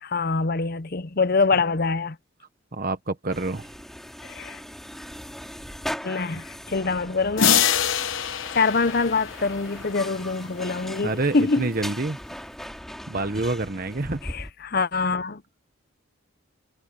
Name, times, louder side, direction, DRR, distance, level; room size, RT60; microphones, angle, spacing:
voice 1, 0.0-2.2 4.2-4.6 6.0-7.7 8.5-11.7 14.2-15.4, left 4 dB, 45° left, 0.8 m, -25 dB
voice 2, 2.7-3.7 11.0-12.2 13.1-14.2, right 2 dB, 45° right, 1.0 m, -27 dB
sound 1, 3.3-14.5, equal, ahead, 2.2 m, -39 dB
sound 2, 7.4-10.1, left 8 dB, 65° left, 1.1 m, -24 dB
head